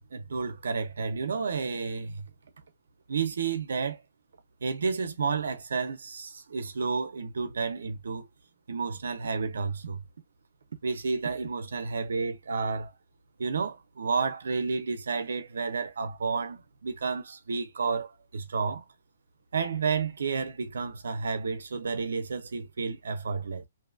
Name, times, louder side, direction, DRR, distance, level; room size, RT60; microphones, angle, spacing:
voice 1, 0.0-2.3 3.1-4.0 4.6-8.3 8.7-10.0 10.8-12.9 13.4-18.8 19.5-23.7, right 5 dB, 80° right, 0.7 m, -31 dB
2.8 x 2.3 x 2.5 m
hypercardioid pair, 175°, 0 cm